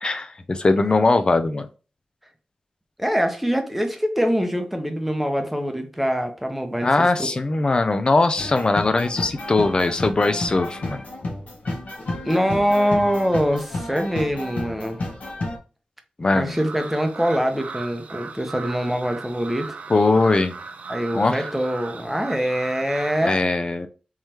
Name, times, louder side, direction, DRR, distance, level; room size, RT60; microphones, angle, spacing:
voice 1, 0.0-1.7 6.8-11.0 16.2-16.6 19.9-20.6 21.1-21.4 23.2-23.9, left 3 dB, 35° left, 0.5 m, -20 dB
voice 2, 3.0-7.4 12.2-15.0 16.3-19.8 20.9-23.4, equal, 5° right, 0.8 m, -24 dB
sound 1, 8.4-15.6, left 2 dB, 65° left, 1.2 m, -31 dB
sound 2, 16.5-23.3, right 4 dB, 65° right, 0.4 m, -37 dB
3.6 x 3.2 x 2.8 m
wide cardioid pair, 95°, 3 cm